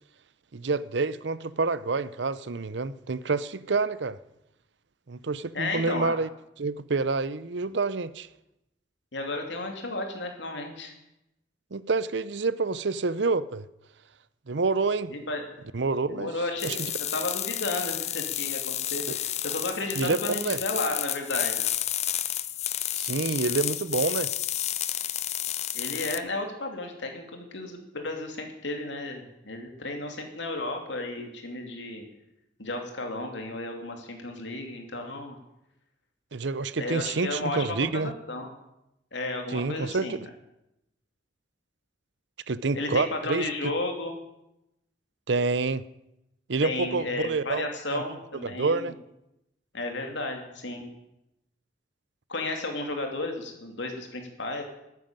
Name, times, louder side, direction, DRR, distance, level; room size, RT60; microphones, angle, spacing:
voice 1, 0.5-4.2 5.1-6.3 6.6-8.3 11.7-13.7 14.5-15.1 15.7-16.3 16.6-16.9 19.1-19.2 20.0-20.6 23.0-24.3 36.3-38.1 39.5-40.3 42.5-43.5 45.3-45.8 46.5-47.6 47.9-48.0 48.4-49.0, right 3 dB, 70° right, 0.7 m, -28 dB
voice 2, 5.5-6.1 9.1-10.9 15.1-15.4 16.1-16.8 17.1-21.7 25.7-32.0 32.6-35.4 36.8-38.5 39.1-40.2 42.7-44.2 46.6-48.9 49.7-50.9 52.3-54.6, left 2 dB, 75° left, 2.9 m, -33 dB
sound 1, 16.6-26.2, left 12 dB, 35° left, 0.6 m, -31 dB
13.0 x 9.3 x 8.9 m
head